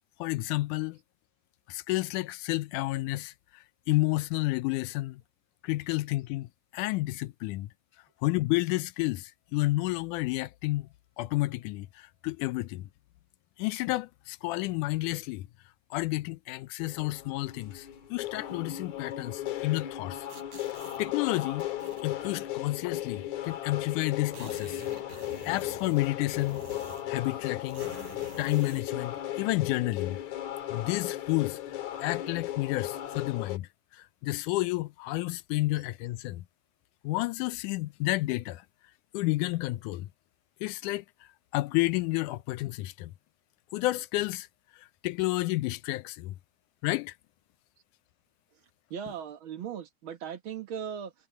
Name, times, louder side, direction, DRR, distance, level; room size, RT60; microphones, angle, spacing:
voice 1, 0.2-1.0 1.7-5.2 5.6-7.7 8.2-10.9 11.2-12.9 13.6-15.5 15.9-20.3 21.0-21.7 22.0-24.8 25.5-26.6 27.1-27.9 28.4-30.2 30.7-33.7 33.9-36.4 37.0-38.6 39.1-40.1 40.6-41.0 41.5-43.1 43.7-44.5 44.8-46.3 46.8-47.1, left 19 dB, 85° left, 2.1 m, -30 dB
sound 1, 16.8-33.6, left 13 dB, 65° left, 2.9 m, -36 dB
sound 2, 20.3-21.0 21.6-22.4 23.4-23.5 23.7-23.8 24.0-27.2 27.7-28.9, right 3 dB, 75° right, 7.6 m, -48 dB
voice 2, 48.9-51.1, right 8 dB, 55° right, 1.6 m, -38 dB
omnidirectional pair, 3.6 m